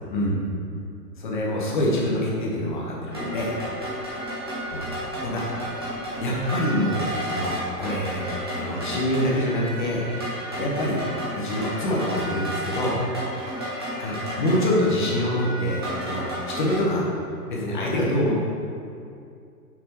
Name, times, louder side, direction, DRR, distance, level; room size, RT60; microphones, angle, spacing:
voice 1, 1.2-3.5 4.7-4.9 5.2-5.5 6.2-8.2 8.5-10.1 10.6-11.0 11.3-13.0 14.0-17.1 17.5-18.4, left 1 dB, 30° left, -3 dB, 0.9 m, -25 dB
sound 1, 3.1-16.8, equal, 15° right, 0.6 m, -32 dB
5.9 x 4.3 x 4.5 m, 2.4 s
hypercardioid pair, 175°, 49 cm